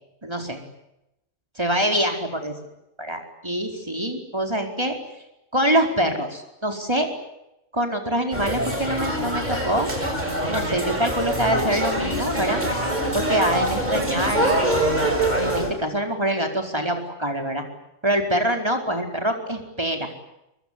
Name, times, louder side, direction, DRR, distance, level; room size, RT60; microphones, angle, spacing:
voice 1, 0.2-0.6 1.6-2.5 3.0-5.0 5.5-7.1 7.7-9.9 10.5-12.6 13.1-14.6 15.4-17.6 18.0-20.1, right 1 dB, 20° right, 3 dB, 4.7 m, -25 dB
sound 1, 8.3-15.7, right 1 dB, 35° right, 7.0 m, -24 dB
25.5 x 24.0 x 9.8 m, 0.88 s
omnidirectional pair, 1.2 m